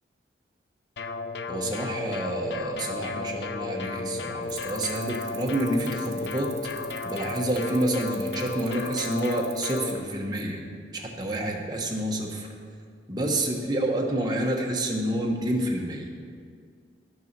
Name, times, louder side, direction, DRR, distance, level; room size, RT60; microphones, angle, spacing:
sound 1, 1.0-10.0, left 3 dB, 70° left, 0.5 m, -34 dB
voice 1, 1.5-6.5 7.0-10.6 10.9-12.5 13.1-16.1, right 1 dB, 20° right, 0 dB, 1.2 m, -28 dB
sound 2, 4.4-9.9, right 12 dB, 75° right, 1.1 m, -44 dB
12.0 x 7.0 x 6.0 m, 2.1 s
head